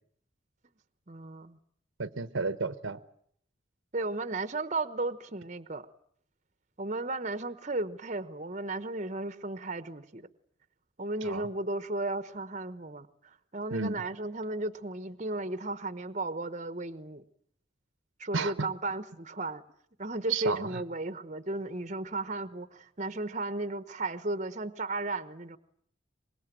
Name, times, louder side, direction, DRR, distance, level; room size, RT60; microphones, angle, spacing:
voice 1, 1.1-1.6 3.9-5.9 6.8-10.3 11.0-17.2 18.2-19.6 20.0-25.6, right 2 dB, 35° right, 13 dB, 1.1 m, -35 dB
voice 2, 2.0-3.0 11.2-11.5 13.7-14.0 18.3-18.7 20.3-20.8, right 4 dB, 85° right, 14 dB, 1.1 m, -32 dB
25.0 x 21.5 x 9.1 m, 0.64 s
head